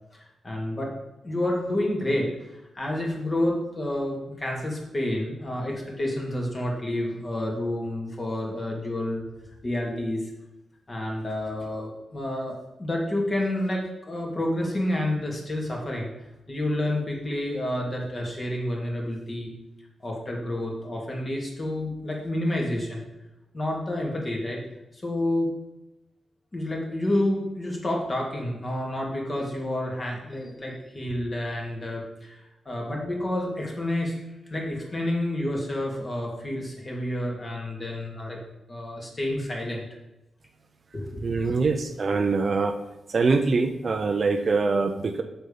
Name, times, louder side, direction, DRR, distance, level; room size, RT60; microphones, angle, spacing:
voice 1, 0.1-0.9 1.2-2.3 2.7-9.2 9.6-10.2 10.9-16.1 16.5-19.5 20.0-23.0 23.5-24.6 24.9-25.5 26.5-34.1 34.5-38.4 38.7-39.9 40.9-41.2, left 1 dB, 25° left, -1 dB, 2.5 m, -29 dB
voice 2, 41.2-42.7 43.1-45.2, right 4 dB, 40° right, 6 dB, 0.7 m, -24 dB
7.7 x 7.1 x 5.5 m, 0.96 s
wide cardioid pair, 140°, 0 cm